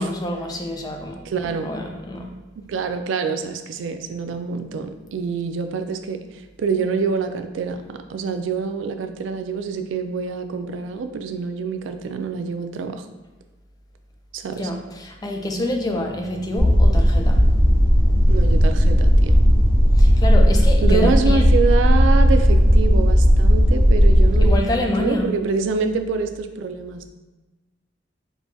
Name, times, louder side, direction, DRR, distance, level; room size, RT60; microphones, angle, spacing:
voice 1, 0.0-2.3 14.6-17.5 20.0-21.6 24.4-25.4, left 1 dB, 20° left, 2 dB, 0.4 m, -27 dB
voice 2, 1.3-1.7 2.6-13.1 14.3-14.7 18.3-19.4 20.8-24.7 25.0-27.1, right 5 dB, 85° right, 8 dB, 0.3 m, -26 dB
sound 1, 16.6-24.6, equal, 50° right, 0.8 m, -15 dB
4.6 x 2.3 x 2.5 m, 1.2 s
head